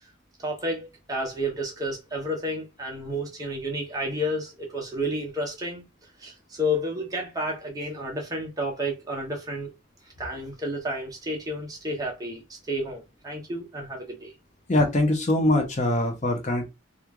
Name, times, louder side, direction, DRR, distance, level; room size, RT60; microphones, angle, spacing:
voice 1, 0.4-5.8 6.2-9.7 10.2-14.3, equal, 20° right, 0.9 m, -31 dB
voice 2, 14.7-16.7, left 1 dB, 35° left, 0.7 m, -23 dB
3.0 x 2.5 x 3.5 m
head